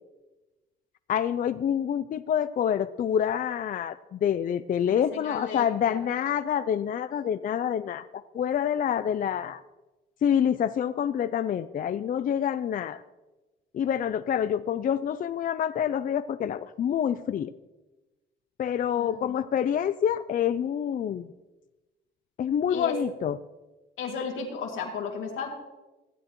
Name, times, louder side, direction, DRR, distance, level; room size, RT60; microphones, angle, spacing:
voice 1, 1.1-9.6 10.2-13.0 13.7-17.5 18.6-21.3 22.4-23.4, left 9 dB, 45° left, 12 dB, 0.4 m, -27 dB
voice 2, 5.1-6.0 18.9-19.4 22.7-23.0 24.0-25.5, left 5 dB, 85° left, 0 dB, 2.2 m, -34 dB
16.0 x 8.9 x 3.0 m, 1.1 s
cardioid pair, 90°, 20 cm